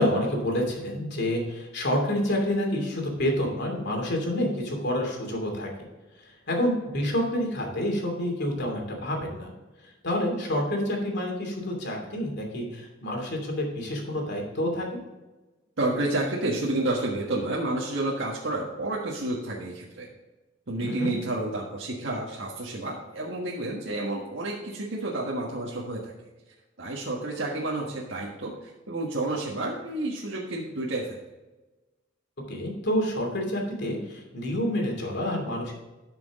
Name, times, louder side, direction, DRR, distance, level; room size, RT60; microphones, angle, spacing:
voice 1, 0.0-5.7 6.5-9.5 10.0-14.8 20.8-21.1 32.5-35.7, left 1 dB, 60° left, 1 dB, 2.8 m, -28 dB
voice 2, 15.8-20.1 20.7-26.1 26.8-31.1, right 2 dB, 70° right, -4 dB, 1.6 m, -30 dB
12.0 x 6.1 x 3.7 m, 1.1 s
head